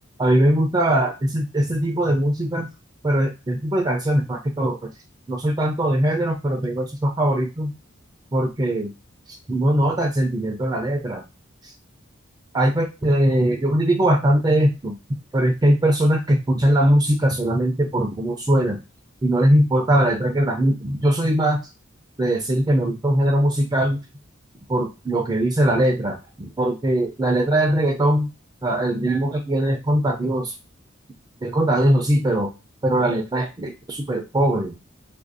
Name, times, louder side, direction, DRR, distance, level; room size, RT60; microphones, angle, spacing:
voice 1, 0.2-2.7 3.0-4.9 5.3-7.7 8.3-8.9 9.3-11.2 11.6-11.7 12.5-14.9 15.3-18.8 19.2-21.6 22.2-24.0 24.7-28.3 28.6-30.5 31.4-32.5 32.8-34.8, right 1 dB, 20° right, 3 dB, 0.4 m, -21 dB
3.7 x 2.5 x 2.5 m, 0.27 s
head